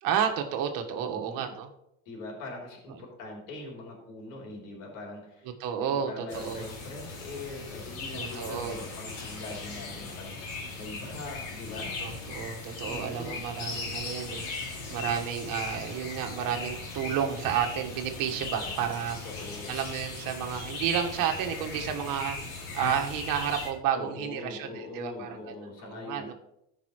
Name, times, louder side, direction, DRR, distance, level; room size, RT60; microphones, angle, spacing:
voice 1, 0.0-1.7 5.6-6.7 8.1-8.8 12.0-19.2 19.7-26.3, right 9 dB, 55° right, 4 dB, 1.5 m, -31 dB
voice 2, 1.0-1.5 2.1-5.5 5.7-12.0 12.8-13.4 19.2-19.7 23.9-26.3, left 2 dB, 75° left, -1 dB, 3.5 m, -42 dB
sound 1, 6.3-23.7, left 3 dB, 60° left, 2.7 m, -38 dB
14.5 x 5.4 x 3.1 m, 0.81 s
supercardioid pair, 95°, 39 cm